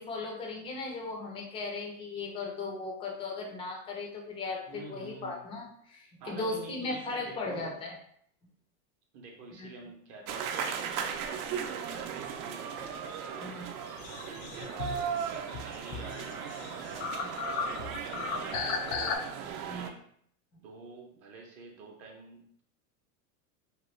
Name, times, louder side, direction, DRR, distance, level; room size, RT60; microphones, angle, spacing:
voice 1, 0.0-7.9 9.6-9.7 13.4-13.7 17.2-17.3 19.6-19.9, left 3 dB, 15° left, 0 dB, 0.3 m, -37 dB
voice 2, 4.7-5.4 6.2-7.7 9.1-10.8 11.5-12.8 13.3-18.8 19.6-20.0 20.6-22.6, right 3 dB, 40° right, 1 dB, 0.5 m, -48 dB
sound 1, 10.3-19.9, right 7 dB, 80° right, 0.6 m, -37 dB
sound 2, 13.9-19.2, left 5 dB, 70° left, 0.6 m, -36 dB
3.0 x 2.3 x 3.0 m, 0.65 s
supercardioid pair, 130°, 44 cm